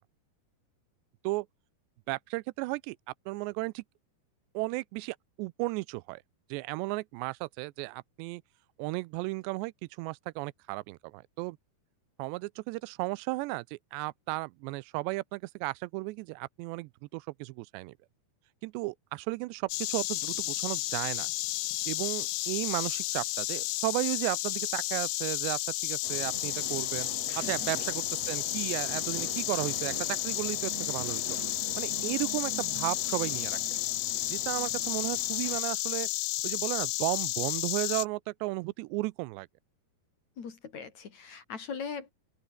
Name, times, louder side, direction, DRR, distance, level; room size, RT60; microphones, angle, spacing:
voice 1, 2.1-3.0 3.3-3.8 4.5-6.2 6.5-8.4 8.8-11.6 12.2-17.9 18.6-21.3 21.9-27.1 27.4-31.2 31.8-33.6 34.3-36.1 36.4-39.5, right 22 dB, 90° right, 2.8 m, -34 dB
Insect, 19.7-38.1, left 19 dB, 80° left, 2.6 m, -32 dB
sound 1, 26.0-35.6, right 8 dB, 45° right, 2.6 m, -44 dB
voice 2, 27.4-27.7 40.4-42.1, left 6 dB, 45° left, 3.8 m, -40 dB
open air
omnidirectional pair, 4.9 m